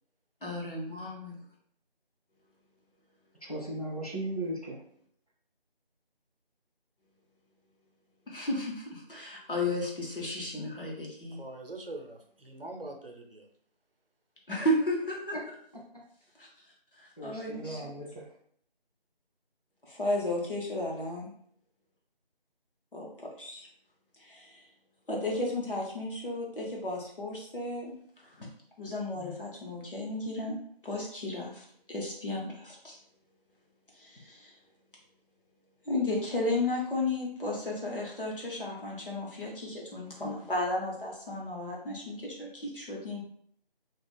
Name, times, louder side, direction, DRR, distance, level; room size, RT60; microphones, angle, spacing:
voice 1, 0.4-1.4 8.3-11.4 14.5-15.4 16.4-16.5 16.9-17.9 19.8-21.3 22.9-23.1 23.4-23.7 24.2-24.7 25.1-28.0 28.2-28.5 28.8-30.6 30.8-33.0 33.9-34.6 35.9-43.2, left 1 dB, 60° left, -2 dB, 1.0 m, -34 dB
voice 2, 3.4-4.8 15.3-15.4 17.2-18.2, right 1 dB, 40° left, -4 dB, 0.7 m, -36 dB
voice 3, 11.4-13.5, right 2 dB, 65° right, 3 dB, 0.6 m, -43 dB
2.4 x 2.2 x 3.3 m, 0.63 s
figure-of-eight pair, 180°, 31 cm